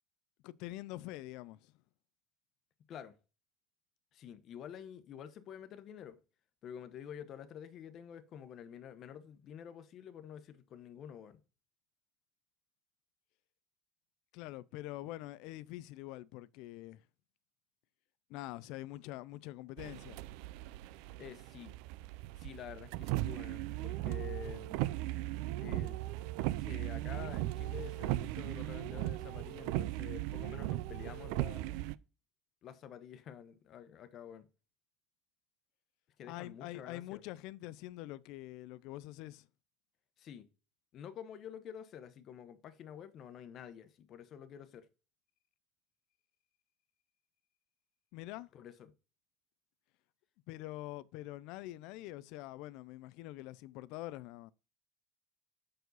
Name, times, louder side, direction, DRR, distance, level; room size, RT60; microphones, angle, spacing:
voice 1, 0.4-1.7 14.3-17.0 18.3-20.2 36.2-39.5 48.1-48.5 50.5-54.5, left 16 dB, 65° left, 0.4 m, -45 dB
voice 2, 4.1-6.2 6.6-11.4 21.2-21.7 22.4-24.9 25.6-26.0 26.5-32.0 32.6-34.5 36.2-37.2 40.2-40.5 40.9-44.9 48.5-48.9, left 9 dB, 45° left, 0.9 m, -49 dB
sound 1, 19.8-31.9, right 16 dB, 75° right, 0.3 m, -38 dB
6.3 x 4.7 x 3.9 m
cardioid pair, 130°, 0 cm